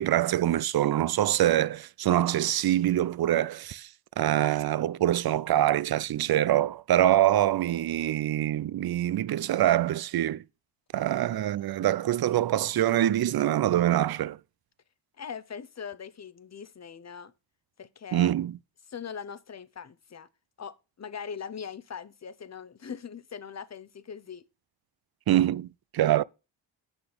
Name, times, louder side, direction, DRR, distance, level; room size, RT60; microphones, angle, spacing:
voice 1, 0.0-3.9 4.2-10.4 10.9-14.4 18.1-18.6 25.3-26.2, right 12 dB, 55° right, 0.5 m, -25 dB
voice 2, 15.2-17.3 17.8-18.3 18.9-20.3 20.6-24.4, left 7 dB, 35° left, 0.8 m, -41 dB
8.1 x 6.1 x 5.1 m
cardioid pair, 70°, 46 cm